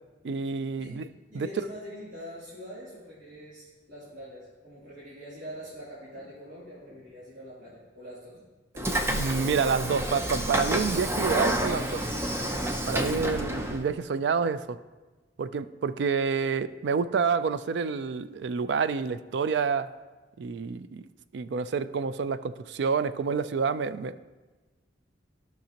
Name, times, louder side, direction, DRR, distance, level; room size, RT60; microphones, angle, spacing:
voice 1, 0.2-1.1 1.3-1.5 9.1-12.1 12.9-14.8 15.4-19.9 20.4-24.2, right 5 dB, 65° right, 14 dB, 0.3 m, -28 dB
voice 2, 1.3-8.4, equal, 90° right, -10 dB, 2.9 m, -44 dB
Train / Sliding door, 8.8-13.8, right 1 dB, 15° right, 0.6 m, -29 dB
14.0 x 5.9 x 2.9 m, 1.2 s
head